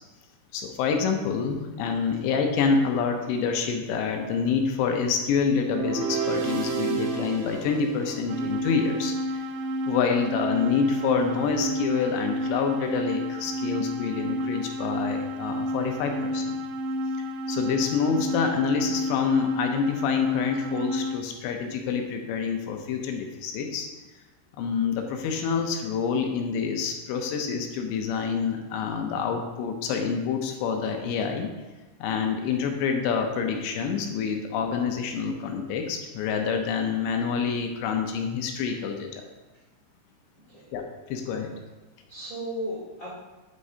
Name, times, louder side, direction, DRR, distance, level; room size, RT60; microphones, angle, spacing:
voice 1, 0.5-9.4 9.9-16.6 17.5-23.9 24.6-31.5 32.0-39.2 40.7-41.5, left 6 dB, 80° left, 4 dB, 2.9 m, -27 dB
sound 1, 5.6-8.9, right 6 dB, 70° right, 2.5 m, -31 dB
sound 2, 8.3-21.2, left 1 dB, 90° right, 3.1 m, -30 dB
voice 2, 40.3-40.7 42.1-43.1, equal, 40° left, -8 dB, 1.1 m, -36 dB
8.6 x 8.2 x 2.8 m, 1.1 s
omnidirectional pair, 5.2 m